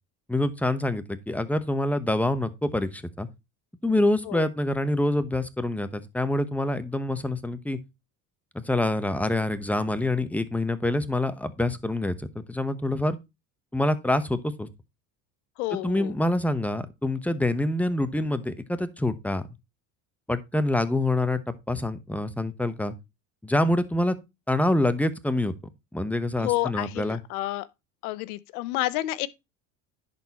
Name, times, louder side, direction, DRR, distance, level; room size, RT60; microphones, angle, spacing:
voice 1, 0.3-3.3 3.8-7.8 8.5-13.2 13.7-14.7 15.7-19.4 20.3-22.9 23.4-24.2 24.5-25.5 25.9-27.2, left 1 dB, 5° left, 0.9 m, -26 dB
voice 2, 15.6-16.1 26.4-27.7 28.0-29.3, left 17 dB, 85° left, 0.7 m, -29 dB
10.5 x 4.4 x 4.1 m
supercardioid pair, 85°, 43 cm